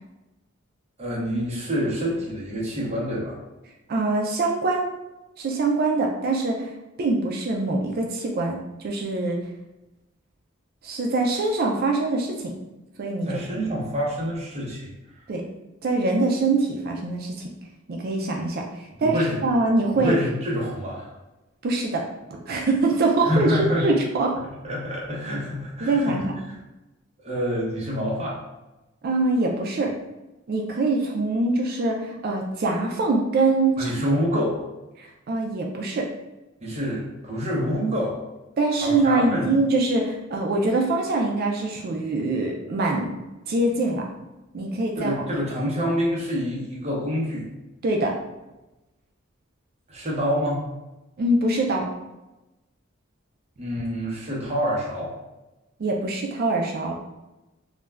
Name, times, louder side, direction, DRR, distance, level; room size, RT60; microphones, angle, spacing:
voice 1, 1.0-3.4 13.2-14.9 19.0-19.4 19.9-21.1 23.2-23.9 24.3-26.2 26.5-26.6 27.2-28.4 33.8-34.6 36.6-38.2 38.8-39.5 45.0-47.4 49.9-50.6 53.6-55.1, equal, 35° right, -5 dB, 0.8 m, -27 dB
voice 2, 3.9-4.9 5.4-6.7 7.0-8.6 8.8-9.4 10.8-12.5 13.0-13.3 13.5-13.6 15.3-15.4 15.8-17.5 17.9-18.6 19.0-20.2 21.6-22.0 22.5-24.3 25.8-26.3 29.0-29.9 30.5-33.9 35.0-36.1 38.6-43.1 43.5-44.1 44.5-45.2 47.8-48.2 51.2-51.9 55.8-57.0, right 2 dB, 50° right, 1 dB, 0.4 m, -23 dB
2.4 x 2.1 x 3.2 m, 1.0 s
head